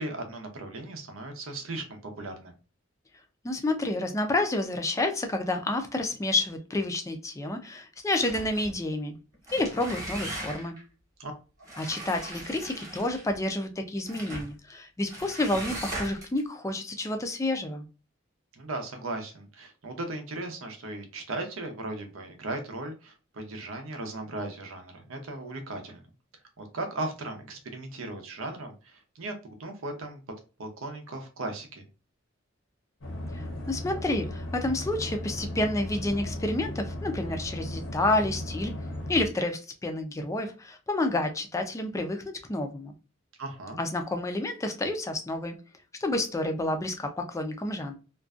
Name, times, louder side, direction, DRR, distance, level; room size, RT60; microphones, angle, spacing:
voice 1, 0.0-2.5 11.2-11.3 18.5-26.1 26.6-30.2 30.6-31.8 43.4-43.8, right 2 dB, 90° right, 5 dB, 0.7 m, -37 dB
voice 2, 3.4-9.2 9.5-10.7 11.8-17.9 33.3-38.7 39.1-42.2 42.5-42.9 43.8-45.6 46.0-47.9, left 2 dB, 15° left, 6 dB, 0.3 m, -29 dB
sound 1, 8.1-8.7 9.3-10.8 11.6-13.4 14.1-14.5 15.1-16.4, right 1 dB, 20° right, 1.0 m, -39 dB
sound 2, 33.0-39.3, left 1 dB, 80° left, 0.8 m, -36 dB
2.5 x 2.2 x 2.3 m, 0.33 s
head